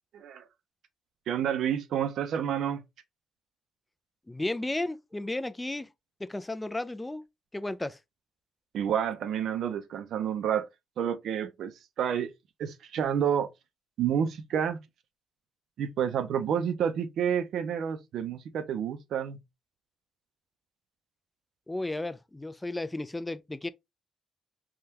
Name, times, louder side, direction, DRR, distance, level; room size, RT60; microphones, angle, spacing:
voice 1, 0.1-0.5 1.3-2.8 8.7-10.7 11.0-12.3 12.6-13.5 14.0-14.8 15.8-19.4, right 8 dB, 70° right, 0.5 m, -29 dB
voice 2, 4.3-5.9 6.2-7.2 7.5-8.0 21.7-23.7, left 2 dB, 15° left, 0.3 m, -33 dB
3.5 x 2.3 x 2.8 m
cardioid pair, 90°, 0 cm